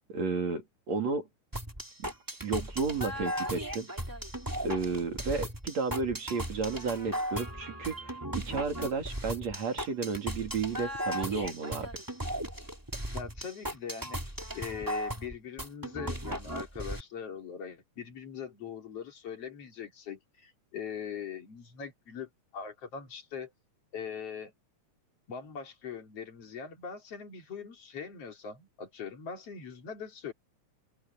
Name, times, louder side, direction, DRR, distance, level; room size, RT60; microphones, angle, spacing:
voice 1, 0.1-1.3 2.0-2.1 2.4-3.9 4.6-8.0 8.4-11.9, right 4 dB, 60° right, 4.0 m, -32 dB
sound 1, 1.5-17.0, equal, 5° right, 2.8 m, -36 dB
voice 2, 13.1-14.2 14.5-23.5 23.9-24.5 25.3-30.3, left 7 dB, 50° left, 4.0 m, -41 dB
open air
omnidirectional pair, 3.5 m